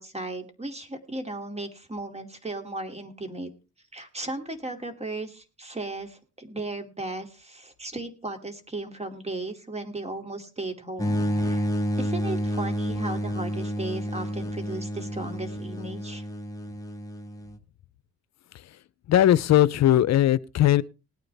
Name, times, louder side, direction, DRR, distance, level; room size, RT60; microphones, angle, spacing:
voice 1, 0.0-3.5 3.9-11.7 12.0-16.3, right 2 dB, 20° right, 2.7 m, -36 dB
sound 1, 11.0-17.6, equal, 10° left, 1.7 m, -30 dB
voice 2, 19.1-20.8, left 12 dB, 60° left, 0.7 m, -19 dB
19.5 x 9.4 x 3.5 m
cardioid pair, 90°, 30 cm